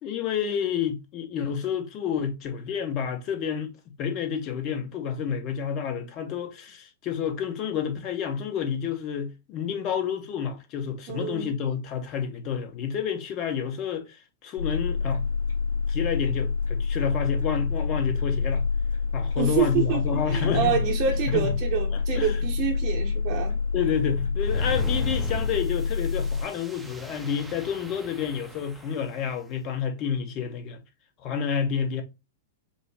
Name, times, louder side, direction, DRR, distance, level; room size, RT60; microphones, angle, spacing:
voice 1, 0.0-3.7 4.0-15.2 15.9-18.6 19.1-20.8 21.3-21.5 21.9-22.3 23.7-30.8 31.2-32.0, left 7 dB, 40° left, 0.9 m, -29 dB
voice 2, 11.1-11.5 19.4-23.6, right 8 dB, 45° right, 0.8 m, -27 dB
sound 1, 14.6-26.4, left 5 dB, 65° left, 1.9 m, -27 dB
sound 2, 24.4-29.3, right 1 dB, 5° right, 0.6 m, -39 dB
5.2 x 2.1 x 3.3 m
figure-of-eight pair, 100°, 0 cm